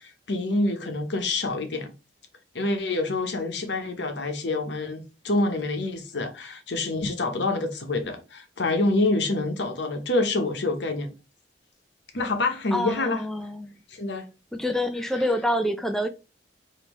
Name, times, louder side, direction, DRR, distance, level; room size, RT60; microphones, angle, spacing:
voice 1, 0.0-1.9 2.5-11.1 12.1-13.2 13.9-14.3 15.1-15.3, left 2 dB, 80° left, 0.9 m, -27 dB
voice 2, 12.7-13.7 14.5-16.1, equal, 5° left, 0.3 m, -27 dB
5.2 x 2.7 x 3.0 m
head